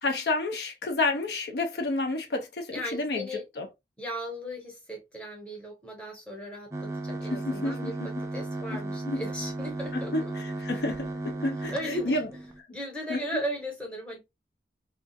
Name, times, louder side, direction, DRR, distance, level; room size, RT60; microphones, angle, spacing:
voice 1, 0.0-3.3 3.6-3.7 7.3-8.1 8.7-8.8 9.1-9.2 9.9-10.0 10.4-12.3 13.1-13.2, left 2 dB, 65° left, 0.5 m, -30 dB
voice 2, 2.7-3.4 4.0-7.9 8.3-10.3 11.7-12.2 12.7-14.2, equal, 5° left, 0.8 m, -36 dB
sound 1, 6.7-12.6, right 2 dB, 15° right, 0.4 m, -35 dB
2.4 x 2.3 x 2.5 m
head